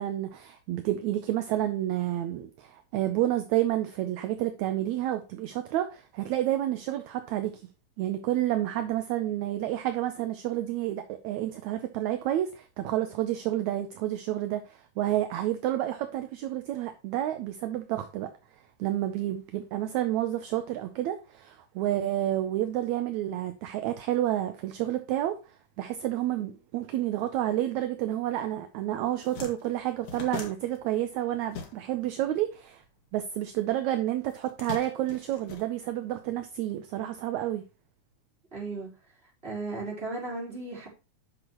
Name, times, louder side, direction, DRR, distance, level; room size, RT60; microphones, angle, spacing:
voice 1, 0.0-7.6 8.0-18.3 18.8-25.4 25.8-32.8 33.1-37.6, right 13 dB, 75° right, 2.0 m, -30 dB
sound 1, 28.6-28.7 29.0-32.2 32.4-33.6 34.3-36.3, left 5 dB, 75° left, 3.3 m, -41 dB
voice 2, 38.5-38.9 39.4-40.9, right 3 dB, 20° right, 4.1 m, -35 dB
11.0 x 5.9 x 3.0 m
omnidirectional pair, 3.5 m